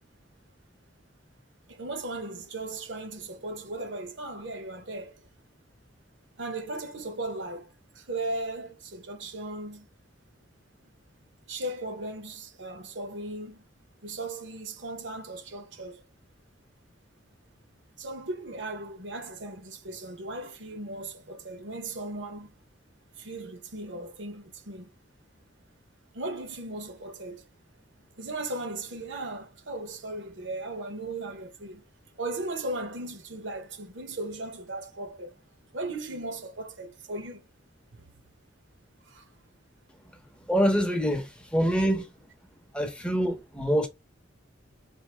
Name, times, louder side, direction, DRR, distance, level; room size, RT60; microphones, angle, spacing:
voice 1, 1.7-5.2 6.4-9.9 11.5-13.6 14.0-16.0 18.0-22.6 23.2-24.9 26.1-27.5 28.2-31.8 32.2-35.3 35.7-37.4 37.9-38.1 39.1-39.3, right 2 dB, 65° right, 0.9 m, -37 dB
voice 2, 40.5-42.1 42.7-43.9, equal, 5° left, 0.7 m, -25 dB
4.5 x 2.5 x 3.3 m
head